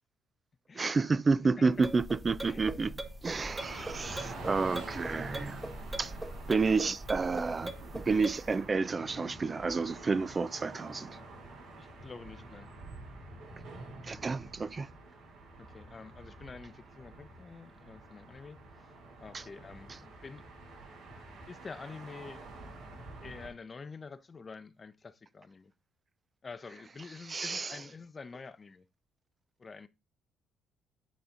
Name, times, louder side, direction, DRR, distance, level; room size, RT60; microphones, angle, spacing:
voice 1, 0.7-2.9 3.2-5.6 6.0-6.2 6.5-11.1 14.0-14.9 19.3-19.4 27.2-27.8, right 4 dB, 35° right, 0.4 m, -30 dB
sound 1, 1.7-8.6, right 1 dB, 15° right, 1.0 m, -42 dB
sound 2, 3.6-23.5, right 2 dB, 75° right, 3.3 m, -47 dB
voice 2, 3.7-4.4 11.8-12.7 15.6-18.9 19.2-20.4 21.5-22.4 23.2-25.7 26.4-28.8 29.6-29.9, left 4 dB, 35° left, 0.7 m, -47 dB
9.6 x 4.1 x 3.8 m
supercardioid pair, 70°, 0 cm